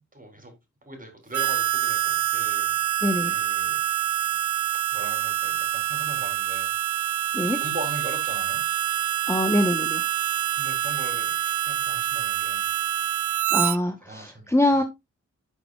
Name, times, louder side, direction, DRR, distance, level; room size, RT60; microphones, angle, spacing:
voice 1, 0.1-0.5 0.8-2.8 3.2-3.8 4.2-4.4 4.9-6.7 7.5-8.6 10.6-12.7 13.8-14.8, right 1 dB, 30° right, 3.9 m, -40 dB
Harmonica, 1.3-13.8, right 13 dB, 85° right, 0.6 m, -26 dB
voice 2, 3.0-3.3 7.3-7.6 9.3-10.0 13.5-14.8, left 1 dB, 10° left, 1.2 m, -23 dB
11.5 x 6.0 x 2.5 m
wide cardioid pair, 80°, 29 cm